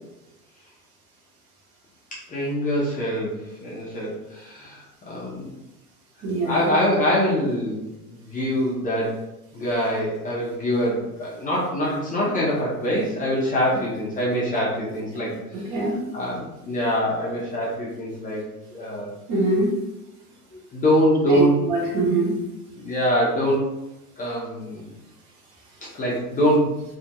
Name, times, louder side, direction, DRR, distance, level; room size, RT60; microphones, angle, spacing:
voice 1, 2.1-5.5 6.4-9.2 9.5-15.3 16.1-18.4 18.7-19.1 20.5-21.6 22.8-23.8 24.2-24.9 25.9-26.8, equal, 20° left, -6 dB, 0.6 m, -24 dB
voice 2, 6.2-6.7 15.5-16.0 19.3-19.7 21.3-22.4, right 2 dB, 40° right, -2 dB, 0.9 m, -23 dB
2.7 x 2.6 x 2.2 m, 0.92 s
hypercardioid pair, 105°, 45 cm